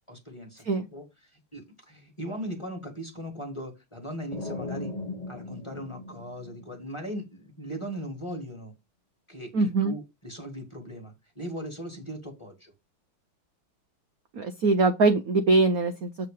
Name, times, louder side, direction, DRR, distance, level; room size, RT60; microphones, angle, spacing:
voice 1, 0.1-4.9 5.3-8.7 9.3-12.7, equal, 15° left, 1.7 m, -39 dB
sound 1, 4.3-7.1, left 2 dB, 45° left, 0.5 m, -38 dB
voice 2, 9.5-9.9 14.3-16.1, right 3 dB, 60° right, 1.0 m, -22 dB
7.9 x 3.7 x 5.2 m
omnidirectional pair, 2.3 m